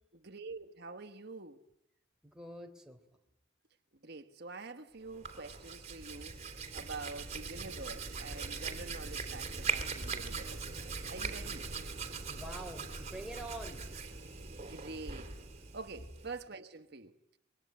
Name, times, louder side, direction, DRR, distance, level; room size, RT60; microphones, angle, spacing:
voice 1, 0.1-1.6 4.0-10.7 11.1-11.7 14.6-15.4 15.7-17.2, right 3 dB, 55° right, 1.4 m, -46 dB
voice 2, 2.2-3.0 12.3-13.8, right 1 dB, 5° right, 3.4 m, -45 dB
Hands, 5.0-16.5, right 4 dB, 35° right, 3.4 m, -41 dB
27.0 x 23.5 x 9.4 m
head